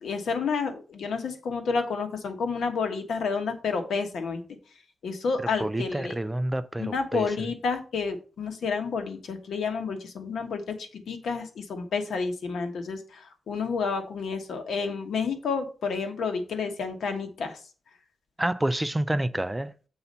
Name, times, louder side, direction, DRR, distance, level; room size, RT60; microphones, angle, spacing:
voice 1, 0.0-4.4 5.0-6.1 6.8-17.6, left 5 dB, 90° left, 1.3 m, -30 dB
voice 2, 5.6-7.3 18.4-19.9, right 1 dB, 10° right, 0.4 m, -28 dB
7.0 x 4.1 x 5.4 m
wide cardioid pair, 140°, 0 cm